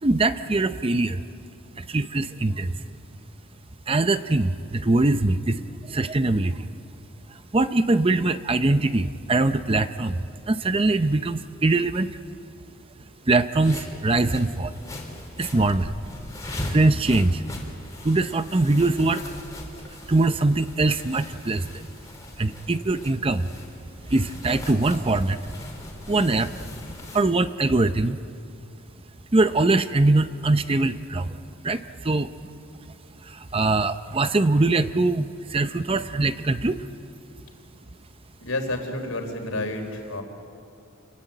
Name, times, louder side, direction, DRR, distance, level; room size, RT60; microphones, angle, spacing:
voice 1, 0.0-1.2 1.8-2.8 3.9-5.6 5.9-6.7 7.3-12.2 13.3-14.8 15.4-15.9 16.7-17.4 18.0-19.2 20.1-21.9 22.4-23.5 24.1-25.4 26.1-26.5 27.1-28.2 29.3-31.4 31.6-32.3 33.2-36.8, right 2 dB, 25° right, 11 dB, 0.6 m, -22 dB
sound 1, 13.5-27.2, left 1 dB, 15° left, 3.6 m, -39 dB
voice 2, 38.4-40.2, left 2 dB, 70° left, 5 dB, 3.9 m, -30 dB
28.0 x 21.5 x 9.0 m, 2.5 s
head